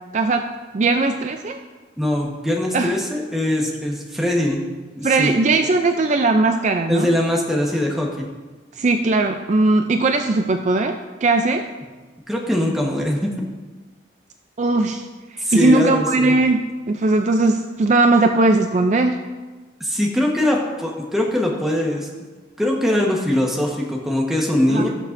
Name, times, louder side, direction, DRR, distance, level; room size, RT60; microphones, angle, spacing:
voice 1, 0.1-0.5 0.7-1.6 2.7-2.9 5.0-7.1 8.8-11.7 14.6-15.1 15.3-19.2 24.7-24.9, right 3 dB, 40° right, 6 dB, 0.4 m, -19 dB
voice 2, 2.0-4.6 5.0-5.4 6.9-8.3 12.3-13.3 15.4-16.3 19.8-22.1 22.6-24.9, left 1 dB, ahead, -2 dB, 1.2 m, -21 dB
18.0 x 6.5 x 2.6 m, 1.3 s
head